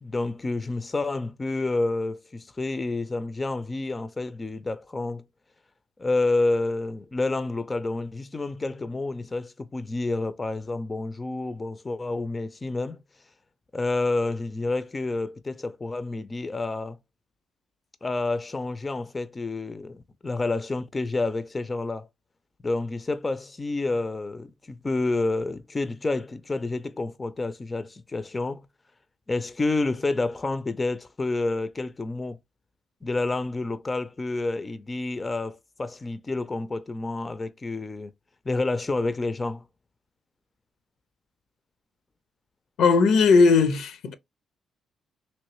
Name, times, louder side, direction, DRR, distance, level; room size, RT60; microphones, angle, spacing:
voice 1, 0.0-5.2 6.0-13.0 13.7-17.0 18.0-22.1 22.6-28.7 29.3-32.4 33.0-38.1 38.5-39.6, left 2 dB, 25° left, 0.4 m, -29 dB
voice 2, 42.8-44.1, left 4 dB, 75° left, 0.6 m, -18 dB
3.1 x 2.9 x 2.9 m
cardioid pair, 90°, 0 cm